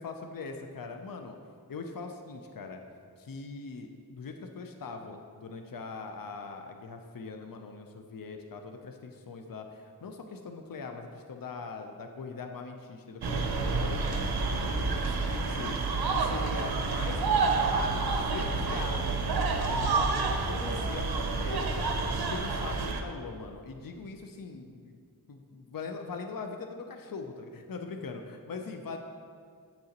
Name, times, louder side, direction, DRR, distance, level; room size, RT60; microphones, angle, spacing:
voice 1, 0.0-1.4 1.7-2.8 3.2-14.2 14.6-15.8 16.1-20.1 20.5-21.9 22.1-25.0 25.3-29.0, left 4 dB, 60° left, 5 dB, 0.6 m, -41 dB
sound 1, 13.2-23.0, right 4 dB, 70° right, 0.6 m, -29 dB
8.3 x 6.5 x 2.9 m, 2.1 s
wide cardioid pair, 50°, 39 cm